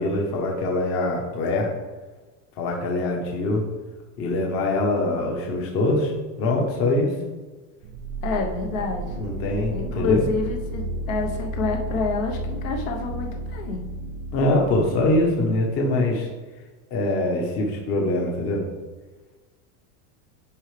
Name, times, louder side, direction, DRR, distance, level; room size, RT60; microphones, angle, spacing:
voice 1, 0.0-1.7 2.6-3.6 4.2-6.1 6.4-7.1 9.2-10.2 14.3-16.3 16.9-18.7, left 2 dB, 30° left, 0 dB, 1.1 m, -23 dB
sound 1, 7.8-15.6, right 1 dB, 40° right, 0.5 m, -32 dB
voice 2, 8.2-9.1 9.7-13.8, left 3 dB, 60° left, 2 dB, 1.1 m, -28 dB
9.9 x 4.8 x 3.3 m, 1.3 s
supercardioid pair, 175°, 45 cm